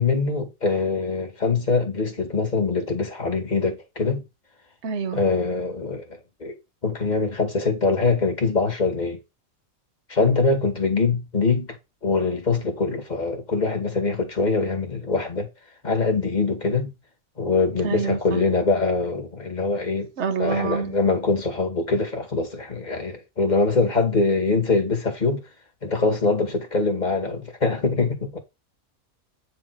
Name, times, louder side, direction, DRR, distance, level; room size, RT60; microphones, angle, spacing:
voice 1, 0.0-4.2 5.1-6.6 6.8-9.2 10.1-11.7 12.0-15.5 15.8-16.9 17.4-20.1 20.4-25.4 25.8-28.4, left 3 dB, 30° left, 2.1 m, -23 dB
voice 2, 4.8-5.2 17.8-18.4 20.2-21.0, right 6 dB, 55° right, 1.4 m, -27 dB
9.3 x 5.0 x 4.7 m
omnidirectional pair, 1.5 m